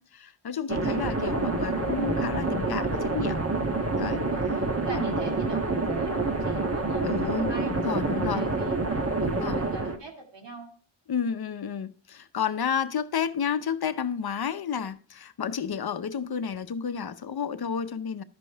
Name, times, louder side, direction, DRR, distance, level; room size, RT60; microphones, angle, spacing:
voice 1, 0.0-3.4 4.0-4.2 4.9-5.2 7.0-8.5 9.2-9.6 11.1-18.2, left 7 dB, 50° left, 0.7 m, -31 dB
sound 1, 0.7-10.0, right 3 dB, 30° right, 1.2 m, -27 dB
voice 2, 4.2-10.7, right 3 dB, 60° right, 2.1 m, -42 dB
12.5 x 5.3 x 3.4 m
cardioid pair, 55°, 49 cm